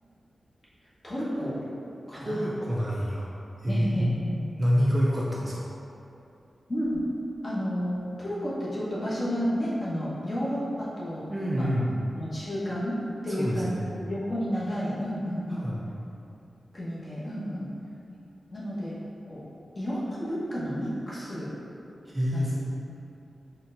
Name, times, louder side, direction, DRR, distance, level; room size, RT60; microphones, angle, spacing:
voice 1, 1.0-1.6 2.1-2.5 3.7-4.4 6.7-7.0 7.4-11.2 11.5-13.8 14.1-15.7 16.7-17.7 18.5-19.0 19.3-19.4 19.8-21.6 22.3-22.5, equal, 30° left, -8 dB, 0.9 m, -31 dB
voice 2, 2.1-3.3 3.6-4.1 4.6-5.6 11.3-12.0 13.4-13.9 15.5-15.9 22.1-22.5, equal, 20° right, -5 dB, 0.3 m, -27 dB
4.2 x 2.1 x 3.7 m, 2.7 s
wide cardioid pair, 155°, 0 cm